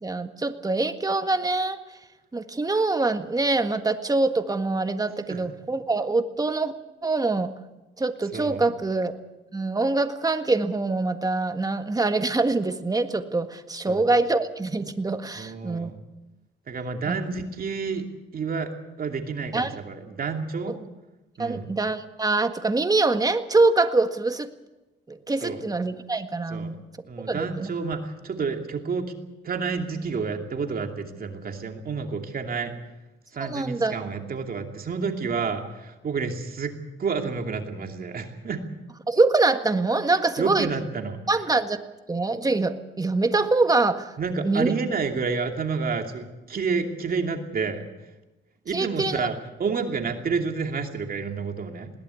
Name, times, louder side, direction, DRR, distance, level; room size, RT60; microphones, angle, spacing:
voice 1, 0.0-1.8 2.3-6.7 7.0-7.5 8.0-9.1 9.5-15.9 17.1-17.2 19.5-19.7 21.4-24.5 25.1-26.8 27.3-27.7 33.4-34.0 39.1-40.7 41.3-41.8 42.1-44.1 44.4-44.7 48.7-49.3, right 3 dB, 20° right, 8 dB, 1.7 m, -24 dB
voice 2, 8.3-8.6 13.9-14.1 15.3-16.0 16.7-18.0 18.3-18.7 19.0-20.8 21.4-21.7 25.4-25.6 26.5-26.7 27.1-29.1 29.4-32.7 33.3-36.7 37.0-38.6 40.4-41.2 44.2-47.8 48.6-51.9, right 5 dB, 50° right, 4 dB, 2.7 m, -29 dB
21.0 x 18.0 x 8.4 m, 1.1 s
cardioid pair, 90°, 20 cm